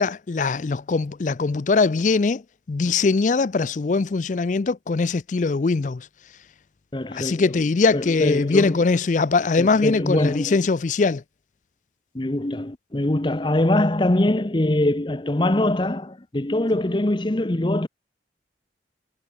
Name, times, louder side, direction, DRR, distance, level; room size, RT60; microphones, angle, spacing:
voice 1, 0.0-2.4 2.7-6.1 7.1-11.2, left 4 dB, 45° left, 0.4 m, -21 dB
voice 2, 6.9-7.5 7.9-8.8 9.6-10.6 12.1-17.9, left 1 dB, 25° left, 0.8 m, -23 dB
head